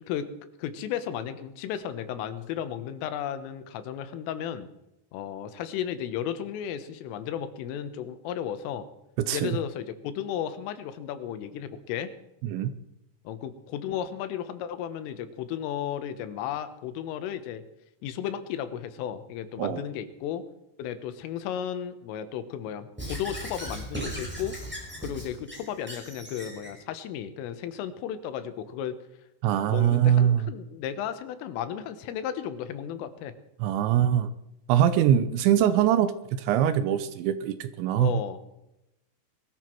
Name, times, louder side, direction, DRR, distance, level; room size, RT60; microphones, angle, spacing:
voice 1, 0.6-4.7 5.1-8.9 9.3-12.1 13.3-17.6 18.0-20.4 20.8-24.6 25.0-29.0 29.7-33.3 38.0-38.5, left 9 dB, 90° left, 11 dB, 3.8 m, -34 dB
voice 2, 12.4-12.7 19.6-19.8 29.4-30.5 33.6-34.3 34.7-38.1, right 10 dB, 80° right, 12 dB, 2.9 m, -23 dB
Squeak / Writing, 23.0-26.7, equal, ahead, 4.8 m, -37 dB
21.0 x 13.5 x 4.6 m, 0.88 s
omnidirectional pair, 5.7 m